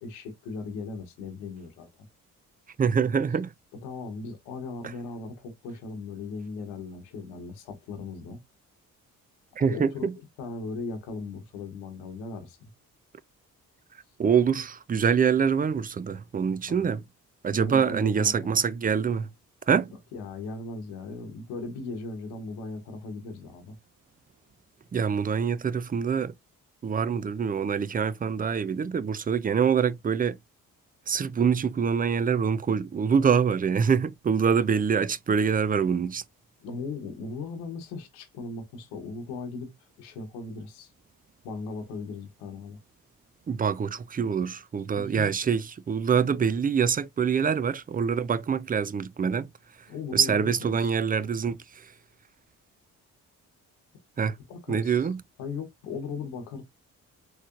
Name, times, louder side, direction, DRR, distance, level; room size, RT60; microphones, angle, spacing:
voice 1, 0.0-1.9 3.7-8.4 9.6-10.1 10.4-12.7 16.7-16.9 17.5-18.6 20.1-23.8 36.6-39.7 40.0-40.9 41.4-42.8 44.9-45.3 49.9-51.0 54.4-55.1 55.4-56.6, left 4 dB, 90° left, 1.1 m, -38 dB
voice 2, 2.8-3.5 9.6-10.1 14.2-17.0 17.4-19.3 19.7-19.9 24.9-26.3 26.8-30.4 31.1-36.2 43.5-49.5 50.1-51.6 54.2-54.4 54.7-55.2, right 6 dB, 25° right, 0.4 m, -25 dB
3.8 x 3.2 x 2.4 m
hypercardioid pair, 45°, 39 cm